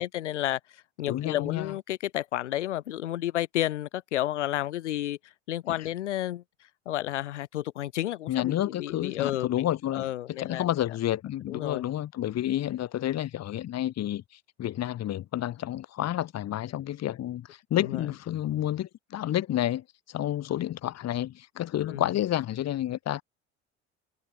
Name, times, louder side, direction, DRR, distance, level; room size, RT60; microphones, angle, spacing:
voice 1, 0.0-6.4 6.8-9.7 9.9-10.6 11.5-11.8 17.8-18.1 21.9-22.1, left 13 dB, 90° left, 1.4 m, -31 dB
voice 2, 1.1-1.7 5.8-5.9 8.3-14.2 14.6-23.2, left 12 dB, 50° left, 1.7 m, -30 dB
hypercardioid pair, 70°, 34 cm